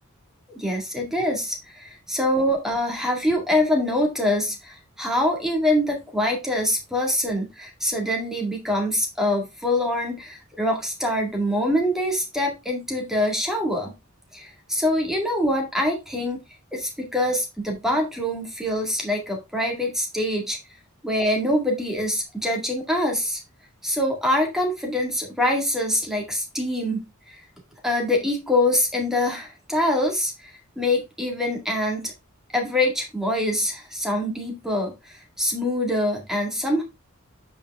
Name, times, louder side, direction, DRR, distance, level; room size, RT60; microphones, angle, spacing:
voice 1, 0.6-13.9 14.3-16.4 16.7-20.6 21.0-23.4 23.8-27.0 27.8-30.5 30.8-32.1 32.5-34.9 35.4-36.8, left 1 dB, ahead, 0 dB, 1.9 m, -24 dB
8.5 x 4.9 x 3.6 m, 0.24 s
head